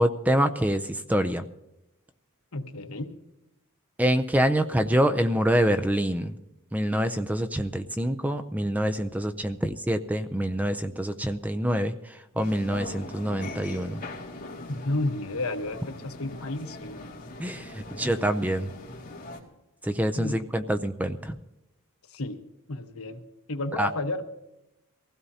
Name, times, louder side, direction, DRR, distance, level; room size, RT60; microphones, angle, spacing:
voice 1, 0.0-1.4 4.0-6.3 6.7-14.0 17.4-18.7 19.8-21.4 23.8-23.9, equal, 5° right, 9 dB, 0.4 m, -26 dB
voice 2, 2.5-3.1 14.7-17.1 20.1-20.3 22.1-22.4 22.7-23.2 23.5-24.2, left 2 dB, 75° left, 5 dB, 1.2 m, -31 dB
sound 1, 12.4-19.4, left 2 dB, 40° left, 2.1 m, -41 dB
23.0 x 16.0 x 2.8 m, 0.92 s
head